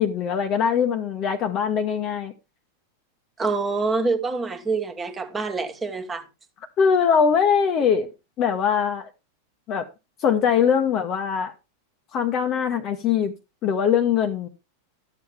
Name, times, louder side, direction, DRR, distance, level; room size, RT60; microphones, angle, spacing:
voice 1, 0.0-2.3 6.8-8.1 8.4-9.1 9.7-9.9 10.2-11.5 12.1-13.3 13.6-14.5, left 7 dB, 35° left, 1.0 m, -22 dB
voice 2, 3.4-6.2, right 4 dB, 15° right, 1.6 m, -26 dB
12.5 x 7.2 x 3.5 m
figure-of-eight pair, 90°, 0 cm